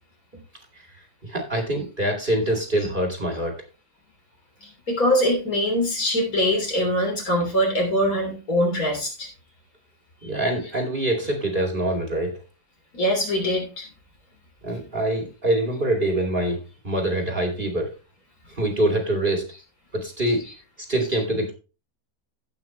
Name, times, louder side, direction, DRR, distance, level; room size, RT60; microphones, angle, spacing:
voice 1, 1.2-3.6 10.2-12.3 14.6-16.6 16.8-17.9 18.6-19.5 19.9-20.4 20.9-21.5, right 1 dB, 35° right, 2 dB, 2.5 m, -24 dB
voice 2, 4.6-9.3 12.9-13.9 20.2-20.5 21.0-21.1, equal, 65° left, 1 dB, 3.8 m, -23 dB
16.5 x 5.8 x 3.0 m, 0.30 s
omnidirectional pair, 1.6 m